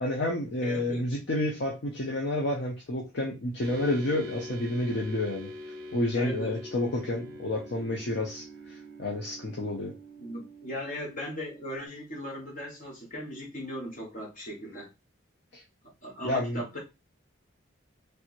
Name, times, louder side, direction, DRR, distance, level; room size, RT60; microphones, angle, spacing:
voice 1, 0.0-5.5 5.9-9.9 15.5-15.6 16.2-16.6, left 1 dB, 60° left, 0.6 m, -30 dB
voice 2, 0.6-1.2 6.1-6.6 10.2-14.9 16.0-16.8, equal, 40° left, 1.3 m, -38 dB
sound 1, 3.6-11.9, equal, 50° right, 0.7 m, -44 dB
3.3 x 3.0 x 2.4 m
head